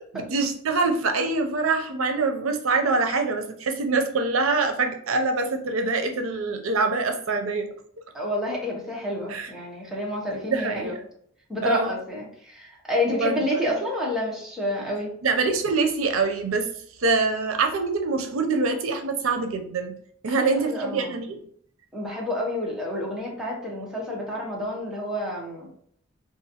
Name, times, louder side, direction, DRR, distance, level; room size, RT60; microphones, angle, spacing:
voice 1, 0.3-7.7 9.3-9.5 10.3-11.0 11.6-11.9 13.2-13.3 15.2-16.7 17.0-19.9 20.2-21.5, right 3 dB, 85° right, 5 dB, 0.5 m, -24 dB
voice 2, 8.1-11.0 11.5-15.1 20.4-21.2 21.9-25.7, left 1 dB, 5° right, -4 dB, 0.9 m, -29 dB
3.9 x 2.5 x 2.8 m, 0.63 s
head